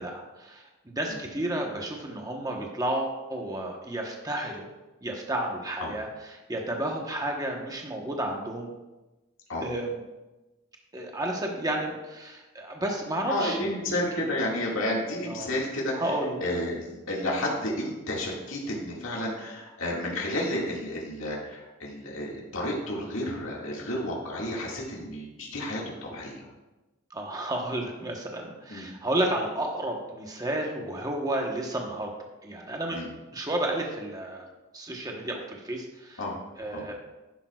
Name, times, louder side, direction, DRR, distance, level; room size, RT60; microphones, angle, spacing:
voice 1, 0.0-4.7 5.0-8.7 9.6-10.0 10.9-14.3 15.3-15.5 16.0-16.4 27.1-32.1 32.4-33.0 33.3-34.5 34.7-36.2 36.6-36.9, right 1 dB, 20° right, 0 dB, 1.1 m, -32 dB
voice 2, 13.3-15.9 16.4-26.5 28.7-28.9 32.9-33.1 36.2-36.4 36.7-36.9, left 1 dB, 70° left, -3 dB, 2.0 m, -31 dB
10.5 x 10.5 x 2.4 m, 1.1 s
head